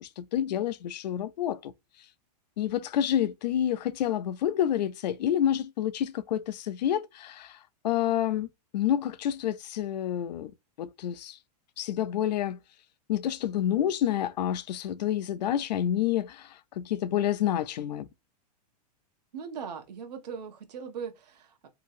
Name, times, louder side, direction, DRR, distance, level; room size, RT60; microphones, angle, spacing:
voice 1, 0.0-1.7 2.6-7.6 7.8-8.5 8.7-10.5 10.8-11.4 11.8-12.6 13.1-18.1, left 10 dB, 80° left, 0.4 m, -28 dB
voice 2, 19.3-21.7, right 6 dB, 75° right, 0.8 m, -39 dB
2.8 x 2.7 x 2.4 m
supercardioid pair, 175°, 21 cm